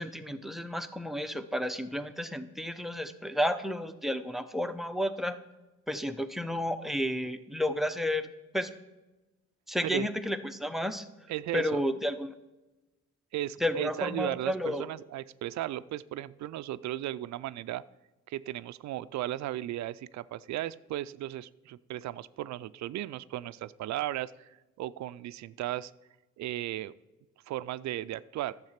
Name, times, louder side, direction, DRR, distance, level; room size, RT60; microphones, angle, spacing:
voice 1, 0.0-5.4 5.9-8.2 8.5-8.7 9.7-11.0 11.5-12.3 13.6-14.9, equal, ahead, 8 dB, 0.6 m, -31 dB
voice 2, 11.3-11.8 13.3-17.8 18.3-24.5 24.8-25.9 26.4-26.9 27.5-28.6, right 14 dB, 65° right, 16 dB, 0.4 m, -35 dB
10.5 x 7.4 x 5.8 m, 1.1 s
cardioid pair, 90°, 30 cm